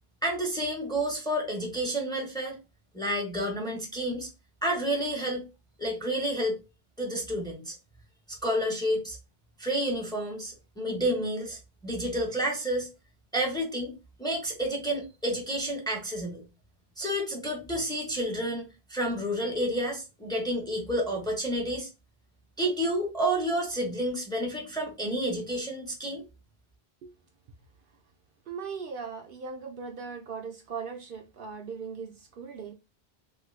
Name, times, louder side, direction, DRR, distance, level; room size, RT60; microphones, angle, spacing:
voice 1, 0.2-2.6 2.9-4.3 4.6-5.4 5.8-6.6 7.0-7.8 8.3-9.2 9.6-12.9 13.3-13.9 14.2-16.4 17.0-18.6 18.9-21.9 22.6-26.2, right 1 dB, 5° left, 0.7 m, -30 dB
voice 2, 28.5-32.7, right 5 dB, 65° right, 0.7 m, -39 dB
3.1 x 2.4 x 3.1 m
omnidirectional pair, 1.0 m